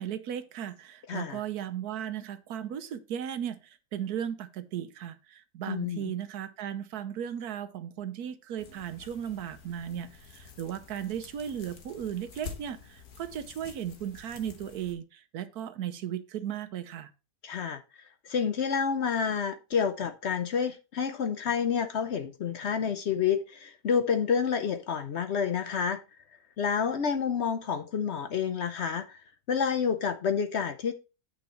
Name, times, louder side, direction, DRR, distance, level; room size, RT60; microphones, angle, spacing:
voice 1, 0.0-17.1, right 9 dB, 85° right, 1.3 m, -36 dB
voice 2, 1.1-1.4 5.7-6.0 17.4-17.8 18.2-26.0 26.6-29.2 29.5-30.9, left 7 dB, 55° left, 0.8 m, -29 dB
sound 1, 8.6-14.9, left 6 dB, 75° left, 1.8 m, -48 dB
8.8 x 5.7 x 4.2 m
omnidirectional pair, 1.6 m